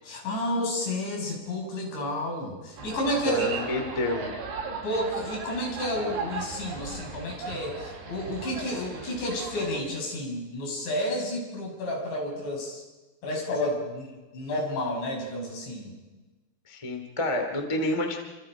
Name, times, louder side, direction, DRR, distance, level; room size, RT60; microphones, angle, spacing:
voice 1, 0.0-3.5 4.8-12.8 13.2-15.9, left 1 dB, 70° left, 0 dB, 8.6 m, -31 dB
sound 1, 2.8-9.8, right 4 dB, 80° right, 6.5 m, -37 dB
voice 2, 3.2-4.3 16.7-18.2, left 1 dB, 10° left, 3 dB, 1.9 m, -28 dB
29.5 x 26.0 x 5.2 m, 1.2 s
omnidirectional pair, 5.4 m